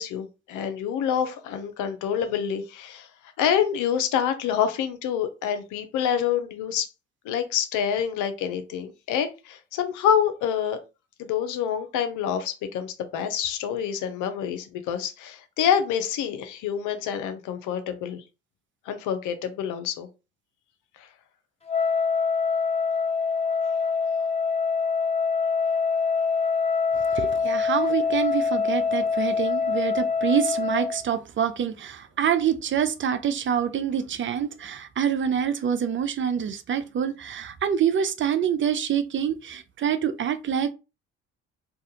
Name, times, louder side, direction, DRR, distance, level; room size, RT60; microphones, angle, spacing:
voice 1, 0.0-3.1 3.4-6.9 7.2-10.8 11.2-18.2 18.9-20.1 21.0-21.1, left 8 dB, 70° left, 0.7 m, -27 dB
Wind instrument woodwind instrument, 21.7-31.0, left 5 dB, 20° left, 1.1 m, -25 dB
voice 2, 27.1-40.7, right 8 dB, 40° right, 0.5 m, -26 dB
2.4 x 2.3 x 2.8 m
hypercardioid pair, 60°, 32 cm